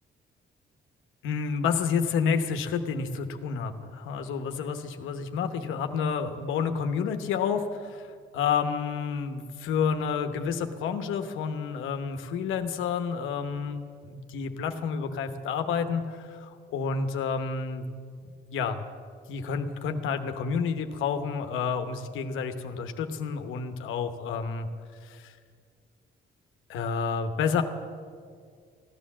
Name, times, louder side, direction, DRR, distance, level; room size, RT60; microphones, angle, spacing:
voice 1, 1.2-17.9 18.5-18.8 19.3-24.7 25.0-25.4 26.7-27.6, left 6 dB, 90° left, 8 dB, 1.0 m, -30 dB
15.0 x 10.0 x 7.4 m, 2.1 s
cardioid pair, 90°, 20 cm